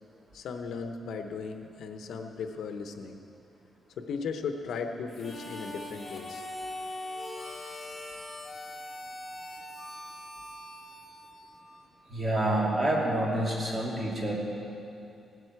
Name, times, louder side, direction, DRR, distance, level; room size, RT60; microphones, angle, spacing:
voice 1, 0.3-3.2 4.0-6.5, left 5 dB, 75° left, 6 dB, 0.8 m, -36 dB
Harmonica, 5.1-12.0, left 1 dB, 15° left, 1.9 m, -41 dB
voice 2, 12.1-14.3, right 1 dB, 25° right, -3 dB, 2.7 m, -28 dB
17.5 x 12.5 x 4.7 m, 2.7 s
cardioid pair, 140°, 0 cm